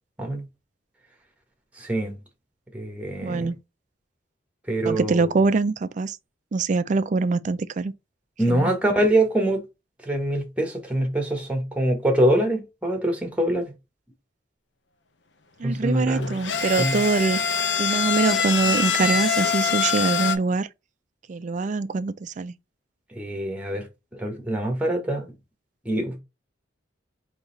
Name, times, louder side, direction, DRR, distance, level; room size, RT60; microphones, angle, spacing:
voice 1, 1.8-2.2 2.7-3.5 4.7-5.3 8.4-9.6 10.0-13.7 15.6-16.3 16.8-17.0 23.1-23.8 24.1-25.3 25.8-26.2, right 1 dB, 5° right, 1.2 m, -24 dB
voice 2, 3.2-3.6 4.8-6.2 6.5-7.9 8.5-8.7 15.6-17.4 17.8-20.7 21.3-22.5, right 3 dB, 40° right, 0.4 m, -24 dB
sound 1, 16.1-20.4, left 6 dB, 70° left, 0.7 m, -24 dB
3.9 x 2.9 x 3.9 m
head